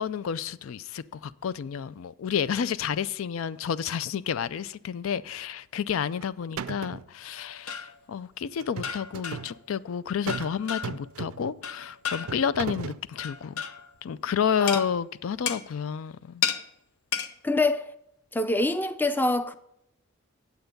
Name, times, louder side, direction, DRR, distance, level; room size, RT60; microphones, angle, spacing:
voice 1, 0.0-13.5 14.0-16.4, left 7 dB, 70° left, 0.4 m, -30 dB
sound 1, 5.9-6.3 6.6-7.1 8.6-9.5 10.3-10.6 10.8-11.6 12.3-13.0, right 6 dB, 85° right, 0.5 m, -36 dB
sound 2, 7.4-8.0 8.8-9.6 10.3-11.1 11.6-12.5 13.2-13.9 14.7-14.9 15.5-15.7 16.4-16.6 17.1-17.3, left 8 dB, 85° left, 0.8 m, -32 dB
voice 2, 17.4-17.9 18.3-19.5, left 2 dB, 10° left, 0.4 m, -25 dB
9.1 x 8.0 x 5.2 m
head